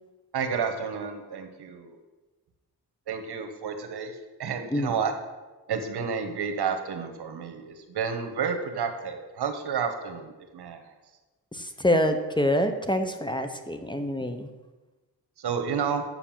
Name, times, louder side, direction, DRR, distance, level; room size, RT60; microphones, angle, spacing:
voice 1, 0.3-2.0 3.1-5.1 5.7-10.9 15.4-16.0, right 6 dB, 75° right, 7 dB, 1.3 m, -31 dB
voice 2, 11.5-14.5, left 1 dB, 10° left, 7 dB, 0.9 m, -26 dB
6.9 x 5.8 x 7.4 m, 1.2 s
cardioid pair, 75°, 40 cm